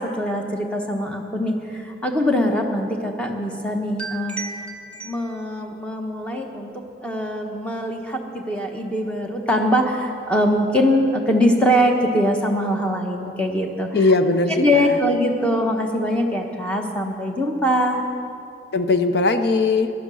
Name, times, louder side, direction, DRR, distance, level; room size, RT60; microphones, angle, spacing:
voice 1, 0.0-4.7 4.9-14.1 14.6-18.0, equal, 5° left, 1 dB, 1.0 m, -22 dB
voice 2, 13.9-15.0 18.7-19.9, left 3 dB, 60° left, 9 dB, 0.6 m, -19 dB
13.5 x 10.5 x 6.2 m, 2.6 s
head